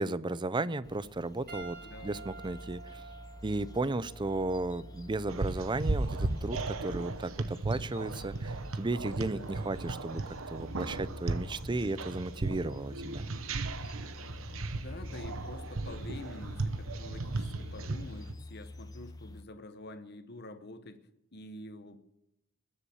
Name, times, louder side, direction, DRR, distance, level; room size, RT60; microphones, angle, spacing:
voice 1, 0.0-3.0 3.4-13.2, right 2 dB, 25° right, 17 dB, 0.5 m, -34 dB
sound 1, 0.8-19.4, left 1 dB, 20° left, 0.7 m, -48 dB
Piano, 1.5-6.1 7.1-7.3 9.2-9.3, right 4 dB, 50° right, 6.7 m, -51 dB
voice 2, 1.8-2.2 14.7-21.0 21.3-22.1, left 1 dB, 55° left, 9 dB, 1.1 m, -47 dB
sound 2, 5.3-18.3, right 3 dB, 75° right, 1.0 m, -36 dB
20.5 x 7.0 x 7.1 m, 0.85 s
head